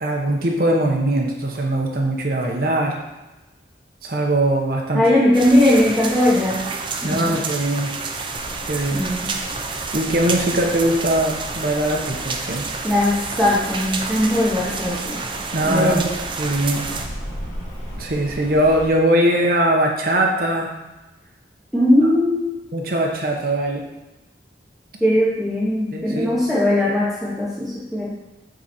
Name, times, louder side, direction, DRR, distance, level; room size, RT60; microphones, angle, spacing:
voice 1, 0.0-3.0 4.0-5.1 7.0-7.9 8.7-9.1 9.9-12.7 15.5-16.0 16.4-16.9 18.0-20.7 22.7-23.9 25.9-26.3, right 1 dB, 50° right, 0 dB, 0.9 m, -21 dB
voice 2, 4.9-6.7 7.0-7.4 8.9-9.4 12.8-15.2 15.6-16.1 21.7-22.6 25.0-28.2, left 1 dB, ahead, -8 dB, 1.0 m, -19 dB
sound 1, 5.3-17.1, right 4 dB, 25° right, 0.5 m, -29 dB
Rain, 8.3-18.9, equal, 45° left, 2.0 m, -37 dB
7.6 x 4.0 x 4.3 m, 1.1 s
head